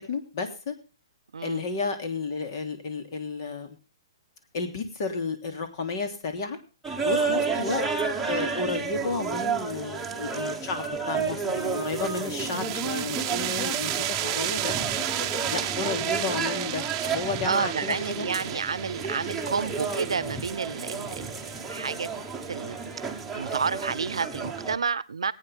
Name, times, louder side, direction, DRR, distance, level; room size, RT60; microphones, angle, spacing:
voice 1, 0.1-0.7 1.4-3.8 4.5-6.6 7.0-7.8 8.2-15.0 15.5-18.3, left 4 dB, 50° left, 7 dB, 3.0 m, -32 dB
sound 1, 6.8-24.8, right 5 dB, 5° right, 1.4 m, -31 dB
sound 2, 11.6-23.0, right 13 dB, 30° right, 0.9 m, -34 dB
voice 2, 17.4-22.1 22.5-23.0 23.3-25.3, right 5 dB, 90° right, 19 dB, 0.8 m, -30 dB
21.0 x 9.0 x 3.6 m, 0.33 s
hypercardioid pair, 145°, 3 cm